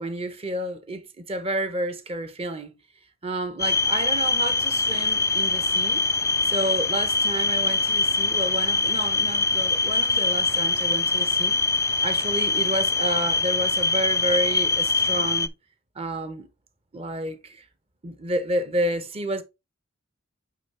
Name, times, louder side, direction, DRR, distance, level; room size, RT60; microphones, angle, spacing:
voice 1, 0.0-2.7 3.2-6.1 6.4-15.5 15.9-16.5 16.9-17.6 18.0-19.4, right 1 dB, 30° right, 1.0 m, -30 dB
sound 1, 3.6-15.5, left 3 dB, 15° left, 0.3 m, -23 dB
8.6 x 3.6 x 3.4 m
head